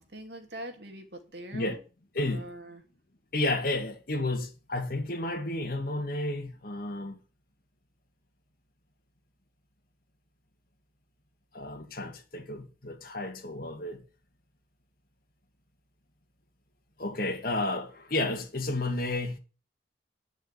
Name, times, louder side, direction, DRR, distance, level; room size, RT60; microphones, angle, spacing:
voice 1, 0.0-1.8 2.2-2.8, right 1 dB, 65° right, 2.7 m, -43 dB
voice 2, 2.1-2.5 3.3-7.2 11.5-14.0 17.0-19.4, left 2 dB, 50° left, 2.3 m, -32 dB
10.5 x 6.3 x 8.3 m
head